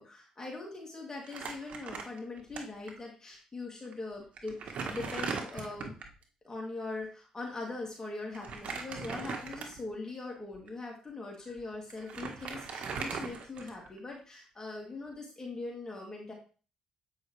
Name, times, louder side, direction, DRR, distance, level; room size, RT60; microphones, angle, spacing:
voice 1, 0.0-6.0 6.4-16.3, left 3 dB, 25° left, -1 dB, 2.9 m, -41 dB
Crumpling crinkling, 1.2-2.6 2.9-3.0 3.8-3.9 4.4-6.2 8.3-9.9 10.5-10.7 11.6-11.7 11.9-14.0, right 5 dB, 60° right, 1.5 m, -39 dB
8.7 x 5.4 x 3.3 m, 0.37 s
supercardioid pair, 60°, 2 cm